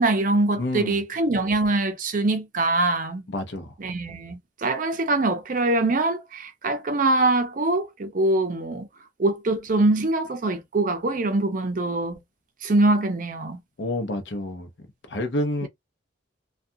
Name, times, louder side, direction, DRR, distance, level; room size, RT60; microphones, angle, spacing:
voice 1, 0.0-3.3 3.8-8.9 9.2-12.2 12.6-13.6 15.6-15.7, right 2 dB, 45° right, 0.5 m, -23 dB
voice 2, 0.6-1.0 3.3-3.7 13.8-14.7 15.1-15.7, left 1 dB, 65° left, 0.6 m, -28 dB
2.4 x 2.3 x 2.7 m
head